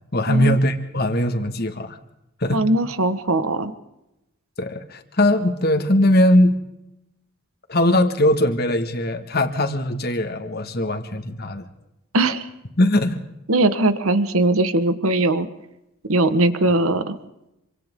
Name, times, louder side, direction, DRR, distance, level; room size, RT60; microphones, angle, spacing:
voice 1, 0.1-2.0 2.4-2.6 4.6-6.6 7.7-11.7 12.8-13.2, left 1 dB, 45° left, 5 dB, 1.9 m, -20 dB
voice 2, 2.5-3.7 12.1-12.5 13.5-15.5 16.1-17.2, right 2 dB, 75° right, 11 dB, 1.4 m, -20 dB
27.0 x 25.0 x 3.8 m, 0.89 s
head